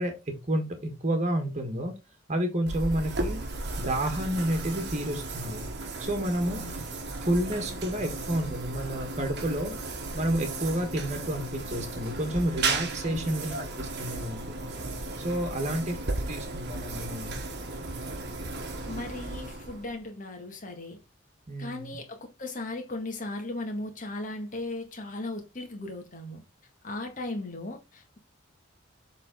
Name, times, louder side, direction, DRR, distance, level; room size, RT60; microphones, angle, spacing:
voice 1, 0.0-1.9 2.3-3.4 3.8-5.7 6.0-6.6 7.2-9.7 10.1-14.6 15.2-16.0 16.3-17.4 21.5-21.9, right 1 dB, 35° right, 1.5 m, -30 dB
sound 1, 2.7-20.0, right 3 dB, 55° right, 1.2 m, -35 dB
voice 2, 6.4-6.8 13.0-13.6 15.6-15.8 18.9-21.0 21.6-26.4 26.8-28.2, left 2 dB, 40° left, 1.8 m, -37 dB
7.3 x 3.8 x 3.7 m
head